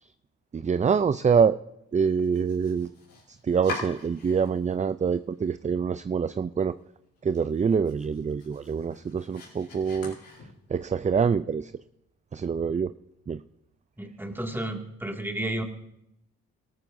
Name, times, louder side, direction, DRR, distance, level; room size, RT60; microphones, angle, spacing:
voice 1, 0.5-1.6 1.9-2.9 3.3-6.8 7.2-10.2 10.7-11.7 12.3-12.9 13.3-13.4, right 6 dB, 20° right, 14 dB, 0.4 m, -25 dB
Domestic sounds home sounds, 2.2-4.7 5.1-5.8 6.2-6.3 6.7-6.8 7.2-10.9, left 3 dB, 75° left, 4.7 m, -43 dB
voice 2, 14.0-15.6, right 1 dB, 5° right, 3 dB, 2.2 m, -32 dB
18.0 x 13.5 x 2.7 m, 0.83 s
hypercardioid pair, 40°, 35 cm